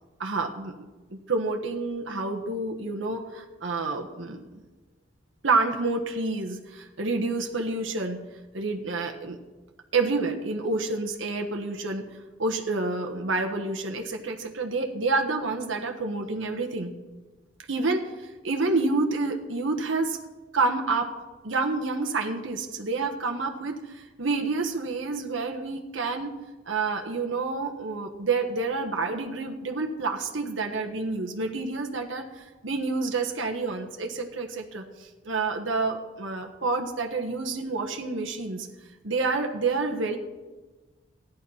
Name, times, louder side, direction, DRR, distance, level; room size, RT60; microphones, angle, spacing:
voice 1, 0.2-0.7 1.1-4.5 5.4-8.2 8.5-9.4 9.9-12.0 12.4-16.9 17.7-20.2 20.5-21.1 21.4-26.3 26.7-38.7 39.0-40.2, right 3 dB, 80° right, 3 dB, 1.2 m, -28 dB
14.0 x 10.5 x 5.7 m, 1.2 s
head